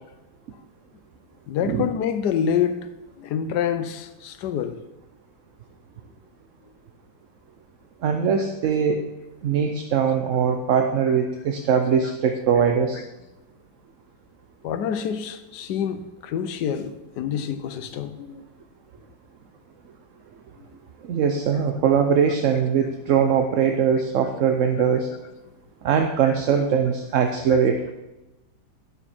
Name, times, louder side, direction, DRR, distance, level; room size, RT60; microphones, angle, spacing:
voice 1, 1.5-2.8 3.2-4.8 14.6-18.4 26.2-26.3 27.5-27.6, left 8 dB, 90° left, 10 dB, 1.3 m, -27 dB
voice 2, 8.0-9.0 9.4-13.0 21.1-25.1 25.8-27.9, right 7 dB, 60° right, 5 dB, 0.9 m, -21 dB
12.0 x 7.1 x 4.3 m, 1.0 s
omnidirectional pair, 1.7 m